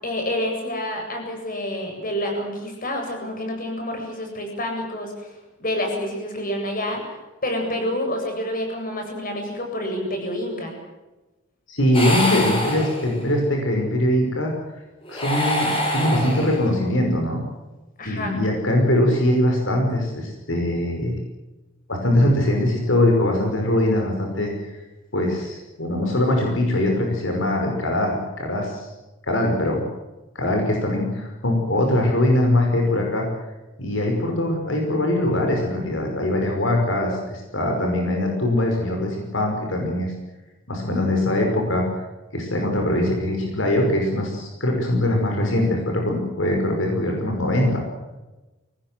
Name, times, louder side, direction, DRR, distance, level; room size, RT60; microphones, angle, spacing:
voice 1, 0.0-5.3 5.6-7.1 7.4-10.7 18.0-18.3, left 1 dB, 45° left, 3 dB, 8.0 m, -28 dB
voice 2, 11.7-14.5 15.1-17.4 18.1-21.2 21.9-24.8 25.1-28.9 29.2-29.9 30.4-33.3 33.8-40.1 40.7-41.9 42.3-47.8, left 1 dB, 75° left, 2 dB, 5.7 m, -22 dB
sound 1, 11.9-13.4 15.0-16.9, left 1 dB, 30° left, 7.4 m, -25 dB
24.5 x 19.0 x 7.8 m, 1.1 s
head